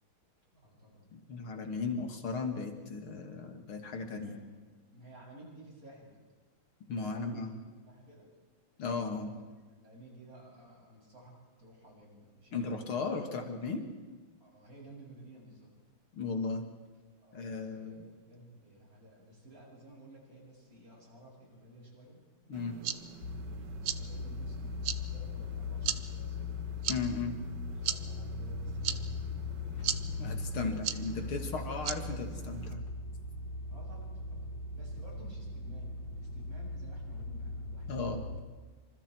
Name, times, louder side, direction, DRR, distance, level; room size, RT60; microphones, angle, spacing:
voice 1, 0.5-1.1 1.7-1.9 4.1-4.4 4.9-6.2 6.8-7.5 7.9-8.4 9.8-13.1 14.4-15.7 17.2-24.9 25.1-26.6 27.7-29.1 29.6-31.1 33.7-34.5 34.7-38.2, right 1 dB, 40° right, -1 dB, 7.8 m, -54 dB
voice 2, 1.1-4.4 6.9-7.6 8.8-9.3 12.5-13.8 16.1-16.6 17.3-18.1 22.5-22.7 26.9-27.4 30.2-32.8 37.9-38.2, left 4 dB, 85° left, 5 dB, 3.2 m, -36 dB
sound 1, 22.5-32.7, right 9 dB, 60° right, 1.5 m, -40 dB
sound 2, 23.2-38.4, left 3 dB, 60° left, 2.0 m, -39 dB
27.5 x 26.5 x 4.7 m, 1.3 s
omnidirectional pair, 2.3 m